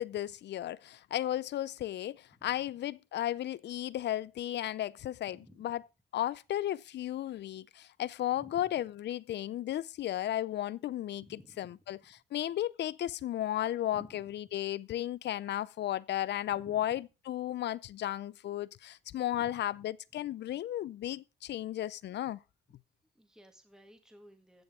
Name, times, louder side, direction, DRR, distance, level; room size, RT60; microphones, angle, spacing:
voice 1, 0.0-5.8 6.1-12.0 12.3-22.4, left 12 dB, 60° left, 0.5 m, -34 dB
voice 2, 2.3-2.7 5.3-5.7 8.4-8.7 11.3-11.8 13.9-14.3 16.5-16.9 19.3-19.6 23.1-24.6, equal, 5° right, 1.6 m, -56 dB
15.0 x 7.1 x 3.6 m
cardioid pair, 90°, 20 cm